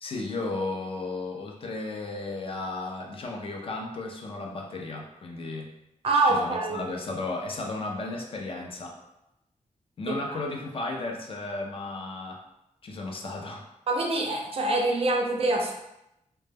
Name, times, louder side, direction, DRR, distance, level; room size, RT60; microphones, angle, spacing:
voice 1, 0.0-5.7 6.3-9.0 10.0-12.4 12.8-13.7, left 2 dB, 45° left, 1 dB, 0.4 m, -34 dB
voice 2, 6.0-6.9 10.1-10.4 13.9-15.7, right 2 dB, 50° right, 1 dB, 0.4 m, -25 dB
2.1 x 2.1 x 3.2 m, 0.86 s
wide cardioid pair, 165°, 13 cm